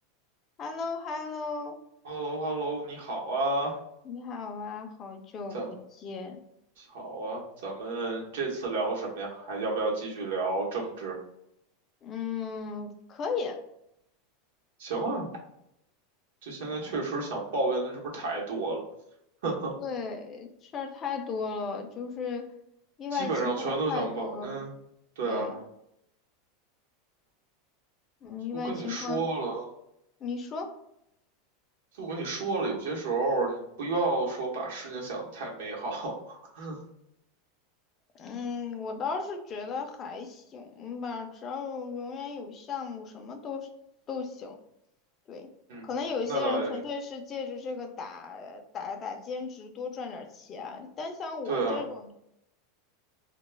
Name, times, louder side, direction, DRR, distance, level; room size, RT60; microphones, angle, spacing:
voice 1, 0.6-1.8 4.0-6.4 12.0-13.6 16.8-16.9 19.8-22.5 23.0-24.6 25.2-25.5 28.2-29.3 30.2-30.7 38.1-43.7 44.1-44.6 45.3-45.5 45.8-52.1, left 5 dB, 20° left, 4 dB, 0.3 m, -36 dB
voice 2, 2.0-3.8 5.5-5.7 6.8-11.2 14.8-15.3 16.4-18.8 19.4-19.7 23.1-24.7 25.2-25.6 28.5-29.7 32.0-36.8 45.7-45.9 46.3-46.7 51.5-51.8, right 3 dB, 80° right, -2 dB, 0.9 m, -31 dB
2.2 x 2.2 x 3.2 m, 0.79 s
supercardioid pair, 180°, 0 cm